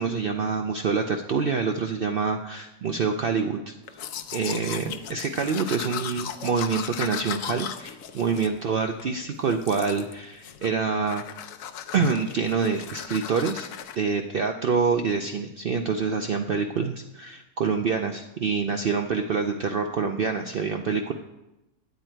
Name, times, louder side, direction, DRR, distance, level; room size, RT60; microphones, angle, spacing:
voice 1, 0.0-3.7 4.3-11.2 11.9-13.7 14.0-21.1, right 5 dB, 65° right, 5 dB, 0.5 m, -26 dB
Domestic sounds home sounds, 3.9-9.1 9.5-10.1 10.4-10.8 11.1-14.0, left 9 dB, 70° left, 1.0 m, -37 dB
9.6 x 8.7 x 4.5 m, 0.96 s
omnidirectional pair, 1.5 m